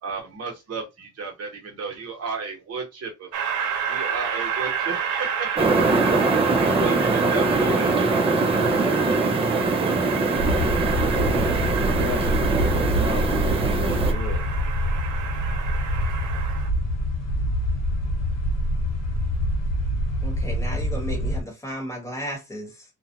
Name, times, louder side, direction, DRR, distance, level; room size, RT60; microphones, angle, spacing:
voice 1, 0.0-3.3 3.9-5.8 6.4-7.9, right 5 dB, 55° right, 1.0 m, -34 dB
Train, 3.3-16.7, right 7 dB, 85° right, 0.8 m, -30 dB
sound 1, 5.6-14.1, right 3 dB, 20° right, 0.4 m, -22 dB
sound 2, 10.3-21.4, equal, 60° left, 1.1 m, -25 dB
voice 2, 10.9-14.5, left 6 dB, 45° left, 0.5 m, -37 dB
voice 3, 20.2-22.8, equal, 10° left, 1.1 m, -34 dB
2.5 x 2.1 x 2.7 m
cardioid pair, 145°, 30 cm